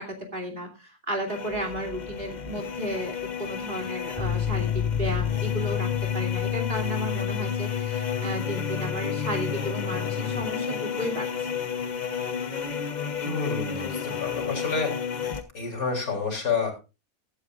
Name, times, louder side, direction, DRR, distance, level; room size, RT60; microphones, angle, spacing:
voice 1, 0.0-11.3, equal, 35° right, 4 dB, 3.0 m, -33 dB
sound 1, 1.3-15.4, left 6 dB, 35° left, 0.9 m, -32 dB
sound 2, 4.2-10.4, left 11 dB, 20° right, 2.1 m, -30 dB
voice 2, 13.2-14.9 15.5-16.7, left 4 dB, 85° left, 3 dB, 4.0 m, -29 dB
16.0 x 11.0 x 2.5 m, 0.30 s
omnidirectional pair, 1.5 m